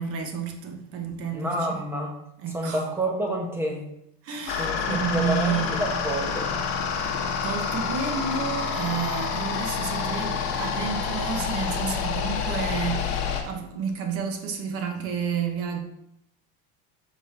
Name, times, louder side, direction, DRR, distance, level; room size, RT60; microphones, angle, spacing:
voice 1, 0.0-1.8 2.4-2.8 4.2-5.9 7.4-15.8, right 6 dB, 45° right, 1.0 m, -30 dB
voice 2, 1.3-2.2 2.5-3.8 4.5-6.5, right 1 dB, 10° right, 1.1 m, -29 dB
sound 1, 4.5-13.4, left 6 dB, 60° left, 1.1 m, -28 dB
5.8 x 4.0 x 4.3 m
cardioid pair, 150°, 31 cm